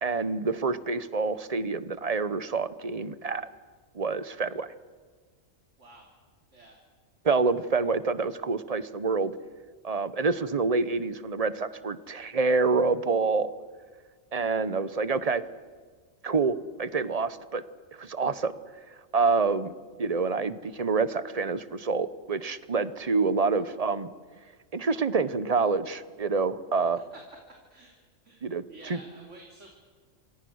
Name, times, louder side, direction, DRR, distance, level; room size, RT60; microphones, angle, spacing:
voice 1, 0.0-3.5 3.9-4.7 7.2-9.3 9.8-13.5 14.3-15.4 16.2-17.6 18.0-18.5 19.1-19.7 20.0-24.1 24.7-27.0 28.4-29.0, right 4 dB, 35° right, 14 dB, 0.9 m, -27 dB
voice 2, 27.5-27.9 28.2-29.7, right 2 dB, 70° right, 0 dB, 3.3 m, -51 dB
28.0 x 25.5 x 6.4 m, 1.5 s
omnidirectional pair, 1.3 m